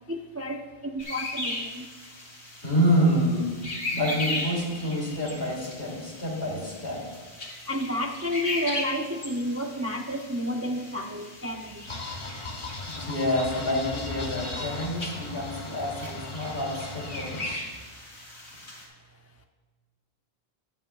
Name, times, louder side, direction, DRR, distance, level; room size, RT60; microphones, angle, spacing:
voice 1, 0.1-0.6 0.9-1.9 7.7-11.8, left 1 dB, 20° right, 3 dB, 0.4 m, -31 dB
sound 1, 1.0-18.8, left 2 dB, 90° left, 2.8 m, -38 dB
voice 2, 2.6-3.5 3.9-7.0 12.8-17.6, equal, 70° left, -4 dB, 3.2 m, -27 dB
sound 2, 11.9-17.6, left 2 dB, 30° left, 0.9 m, -37 dB
20.0 x 7.5 x 2.4 m, 1.3 s
omnidirectional pair, 1.1 m